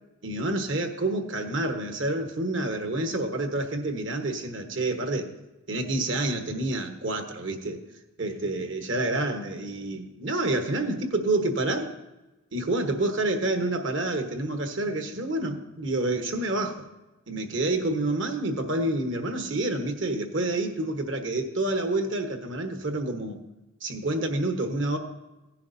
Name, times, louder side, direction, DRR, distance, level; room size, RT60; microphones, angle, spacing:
voice 1, 0.2-5.3 5.7-7.8 8.2-11.9 12.5-16.8 17.3-23.4 23.8-25.0, right 2 dB, 60° right, 5 dB, 1.2 m, -28 dB
16.5 x 10.5 x 2.7 m, 1.0 s
head